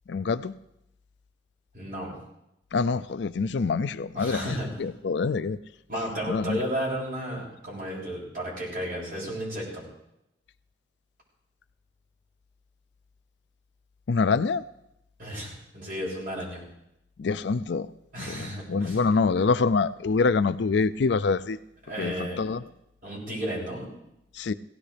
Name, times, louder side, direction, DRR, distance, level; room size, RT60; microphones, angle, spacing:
voice 1, 0.1-0.5 2.7-5.6 6.3-6.6 14.1-14.6 17.2-17.9 18.2-21.6 22.0-22.6 24.4-24.5, left 4 dB, 70° left, 0.4 m, -25 dB
voice 2, 1.7-2.1 4.1-4.8 5.9-9.8 15.2-16.6 18.1-19.0 21.8-22.4 23.0-23.9, equal, 50° right, 6.4 m, -33 dB
17.5 x 17.0 x 3.4 m
head